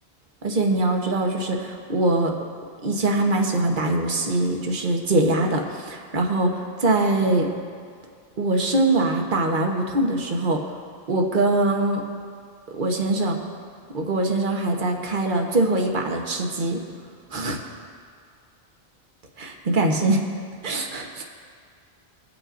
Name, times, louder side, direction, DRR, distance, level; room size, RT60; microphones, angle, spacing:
voice 1, 0.4-2.3 2.8-7.5 8.4-10.6 11.1-12.0 12.7-13.4 13.9-16.8 17.3-17.6 19.4-20.2 20.6-21.2, right 2 dB, 50° right, 2 dB, 1.2 m, -23 dB
20.5 x 8.4 x 2.5 m, 2.1 s
omnidirectional pair, 1.1 m